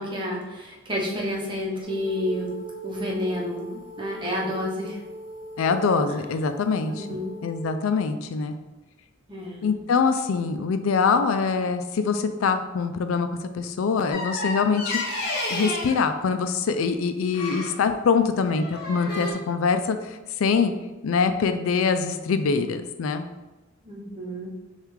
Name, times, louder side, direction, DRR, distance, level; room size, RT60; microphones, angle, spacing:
voice 1, 0.0-2.5 2.8-5.0 6.9-7.4 9.3-9.7 23.8-24.5, left 1 dB, 25° right, -2 dB, 0.9 m, -30 dB
sound 1, 1.8-7.6, right 2 dB, 75° right, 0.9 m, -40 dB
voice 2, 5.6-7.1 7.4-8.6 9.6-13.3 13.5-15.0 15.5-20.7 21.0-23.3, left 5 dB, 85° left, 8 dB, 0.4 m, -24 dB
sound 2, 14.1-16.0 17.3-17.8 18.4-19.3, left 2 dB, 55° left, 1.4 m, -30 dB
6.5 x 2.4 x 3.1 m, 1.1 s
head